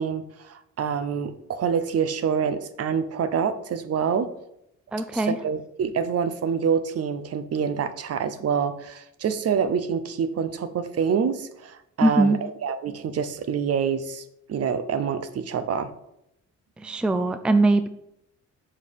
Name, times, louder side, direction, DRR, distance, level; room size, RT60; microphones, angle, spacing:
voice 1, 0.0-4.3 5.1-14.2 14.5-15.9, right 7 dB, 55° right, 12 dB, 0.8 m, -26 dB
voice 2, 4.9-5.4 12.0-12.4 16.8-17.9, right 2 dB, 5° right, 10 dB, 0.4 m, -21 dB
7.0 x 4.5 x 5.4 m, 0.79 s
cardioid pair, 90°, 30 cm